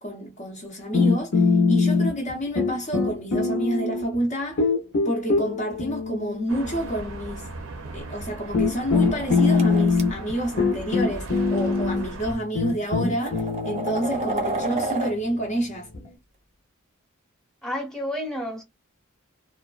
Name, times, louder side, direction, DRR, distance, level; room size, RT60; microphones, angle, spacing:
voice 1, 0.0-4.7 5.0-7.5 7.9-15.9, right 1 dB, 35° left, 0.5 m, -29 dB
sound 1, 0.9-2.3 2.6-4.2 4.6-7.0 8.0-8.1 8.5-16.1, left 4 dB, 70° left, 0.7 m, -23 dB
sound 2, 6.5-12.4, right 2 dB, 75° right, 0.6 m, -38 dB
sound 3, 8.9-10.0 11.1-11.3 12.2-12.3 12.9-15.1, right 2 dB, 35° right, 0.6 m, -30 dB
voice 2, 17.6-18.6, left 1 dB, 5° left, 0.8 m, -30 dB
2.4 x 2.2 x 2.3 m
head